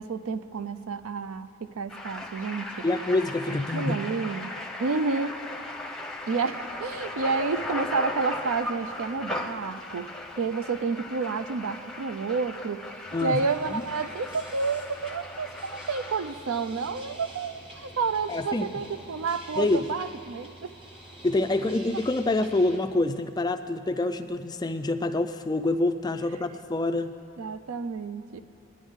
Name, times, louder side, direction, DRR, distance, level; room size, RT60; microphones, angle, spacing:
voice 1, 0.0-2.9 3.7-4.5 4.8-5.4 6.3-10.1 10.4-20.7 27.4-28.4, right 4 dB, 70° right, 12 dB, 0.5 m, -30 dB
sound 1, 1.9-16.3, left 1 dB, ahead, 0.7 m, -37 dB
voice 2, 2.8-4.0 13.1-13.8 18.3-18.7 19.6-19.8 21.2-27.1, left 2 dB, 20° left, 8 dB, 0.3 m, -26 dB
sound 2, 6.1-20.1, right 1 dB, 85° right, 3.9 m, -56 dB
sound 3, 13.1-22.8, right 1 dB, 25° right, 1.3 m, -48 dB
21.0 x 10.5 x 3.6 m, 2.5 s
head